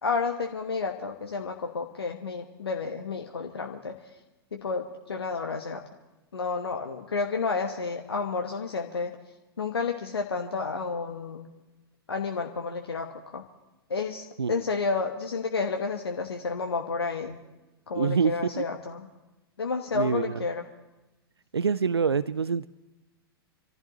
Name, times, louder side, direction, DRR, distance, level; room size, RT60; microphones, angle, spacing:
voice 1, 0.0-4.0 4.5-5.8 6.3-9.2 9.6-11.5 12.1-13.4 13.9-17.4 17.9-19.0 19.6-20.7, left 4 dB, 80° left, 3 dB, 1.2 m, -31 dB
voice 2, 18.0-18.7 19.9-20.5 21.5-22.7, right 6 dB, 90° right, 18 dB, 0.4 m, -26 dB
27.0 x 14.5 x 3.0 m, 1.1 s
figure-of-eight pair, 105°, 13 cm